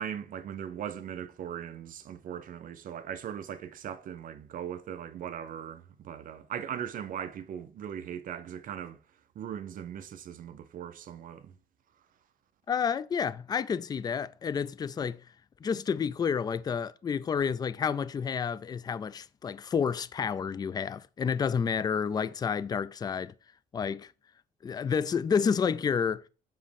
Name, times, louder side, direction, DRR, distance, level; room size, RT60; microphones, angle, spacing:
voice 1, 0.0-9.0 9.4-11.5, right 9 dB, 55° right, 0.6 m, -39 dB
voice 2, 12.7-15.2 15.6-23.3 23.7-24.1 24.6-26.2, left 6 dB, 25° left, 0.4 m, -30 dB
7.3 x 3.1 x 5.0 m
cardioid pair, 110°, 17 cm